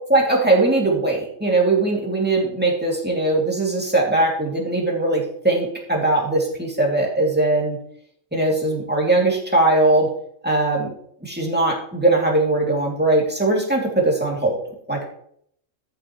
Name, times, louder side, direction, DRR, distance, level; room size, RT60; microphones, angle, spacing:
voice 1, 0.1-7.8 8.3-10.1 10.4-10.9 11.2-14.6 14.9-15.0, right 2 dB, 5° right, -3 dB, 2.6 m, -20 dB
13.0 x 7.6 x 3.1 m, 0.65 s
omnidirectional pair, 1.4 m